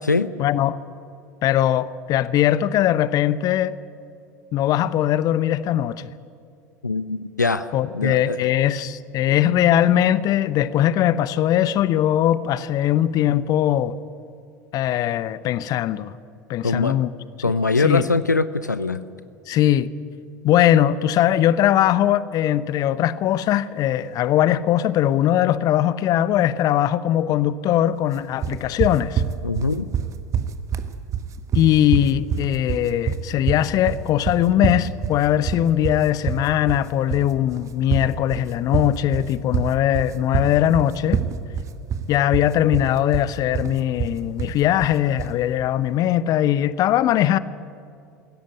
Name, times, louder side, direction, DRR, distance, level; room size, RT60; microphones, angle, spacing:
voice 1, 0.4-0.8 1.4-3.7 4.5-6.1 7.7-14.0 14.7-16.1 16.5-17.1 17.8-18.1 19.5-19.9 20.4-29.2 31.5-41.2 42.1-47.4, left 12 dB, 40° left, 0.8 m, -20 dB
voice 2, 6.8-8.4 9.3-9.4 16.6-17.0 17.4-19.1 29.4-29.9, left 3 dB, 85° left, 0.6 m, -22 dB
sound 1, 28.4-45.4, right 8 dB, 35° right, 1.3 m, -26 dB
21.0 x 17.0 x 9.6 m
figure-of-eight pair, 75°, 9 cm